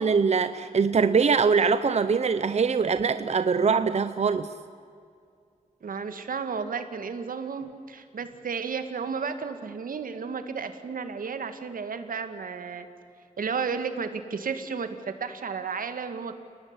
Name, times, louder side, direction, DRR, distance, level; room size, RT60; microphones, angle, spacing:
voice 1, 0.0-4.5, right 5 dB, 50° right, 11 dB, 0.8 m, -23 dB
voice 2, 5.8-12.9 13.4-16.4, right 5 dB, 85° right, 9 dB, 2.1 m, -33 dB
30.0 x 19.5 x 9.8 m, 2.3 s
wide cardioid pair, 130°, 14 cm